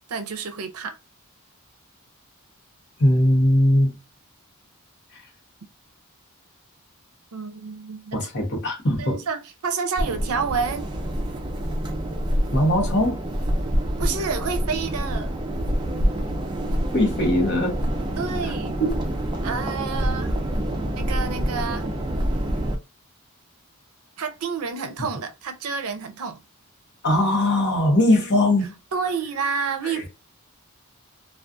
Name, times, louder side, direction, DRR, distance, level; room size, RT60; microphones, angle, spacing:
voice 1, 0.1-0.9 7.3-8.3 9.0-10.9 14.0-15.3 18.2-18.8 19.4-20.4 20.9-21.9 24.2-26.4 28.9-30.1, right 5 dB, 75° right, 0.5 m, -29 dB
voice 2, 3.0-4.0 5.1-5.2 8.1-9.2 12.5-13.2 16.9-17.8 18.9-19.0 27.0-28.8 29.8-30.0, left 1 dB, 50° left, 0.9 m, -20 dB
sound 1, 10.0-22.8, equal, 20° right, 0.4 m, -26 dB
2.4 x 2.3 x 2.5 m
head